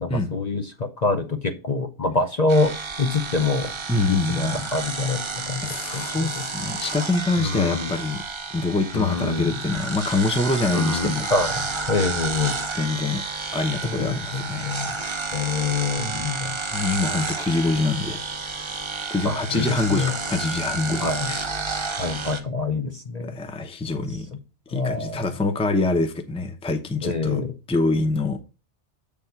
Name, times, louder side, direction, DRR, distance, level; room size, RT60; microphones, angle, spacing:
voice 1, 0.0-6.5 7.4-7.9 8.9-9.6 10.7-12.6 13.8-15.0 15.3-16.6 19.2-20.1 21.0-21.3 22.0-23.4 24.7-25.2 27.0-27.5, left 3 dB, 45° left, 0.7 m, -26 dB
sound 1, 2.5-22.4, right 4 dB, 30° right, 0.8 m, -31 dB
voice 2, 3.9-4.6 5.6-8.2 8.5-11.3 12.7-13.2 13.5-14.7 16.0-16.3 16.7-18.2 18.6-21.5 23.3-24.3 24.7-27.4 27.7-28.4, left 3 dB, 5° left, 0.6 m, -25 dB
7.9 x 3.5 x 5.7 m
omnidirectional pair, 1.2 m